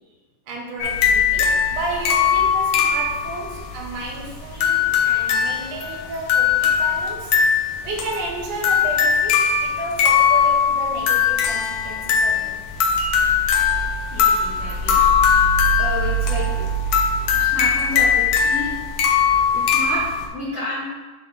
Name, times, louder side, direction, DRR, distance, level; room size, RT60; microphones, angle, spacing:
voice 1, 0.5-7.4 7.8-12.6 12.8-13.0, right 2 dB, 75° right, -1 dB, 2.5 m, -32 dB
sound 1, 0.8-20.3, left 6 dB, 75° left, 1.4 m, -20 dB
voice 2, 14.1-15.0 15.8-16.7 17.3-18.7 19.5-20.0 20.3-20.9, left 2 dB, 30° left, -14 dB, 1.8 m, -30 dB
8.6 x 3.8 x 3.2 m, 1.2 s
omnidirectional pair, 3.7 m